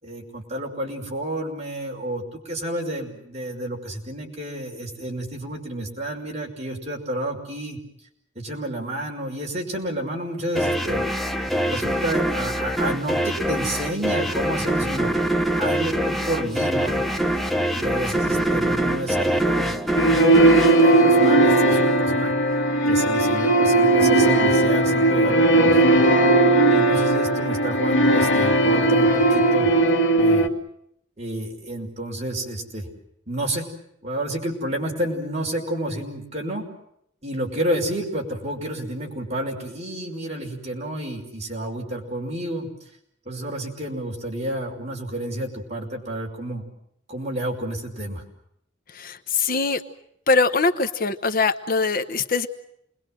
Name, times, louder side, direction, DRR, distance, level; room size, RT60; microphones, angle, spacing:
voice 1, 0.0-7.8 8.4-11.0 11.6-15.1 15.6-17.1 17.7-22.3 22.9-26.0 26.7-29.7 30.1-30.5 31.2-32.9 33.3-33.7 34.0-36.6 37.2-42.7 43.3-46.6 47.1-48.2, right 1 dB, 35° right, 0 dB, 5.8 m, -30 dB
sound 1, 10.6-21.8, right 1 dB, ahead, 1.0 m, -24 dB
sound 2, 20.0-30.5, right 2 dB, 70° left, 2.0 m, -17 dB
voice 2, 48.9-49.8 50.3-52.5, left 4 dB, 45° left, 10 dB, 1.1 m, -22 dB
28.5 x 21.5 x 7.7 m, 0.74 s
head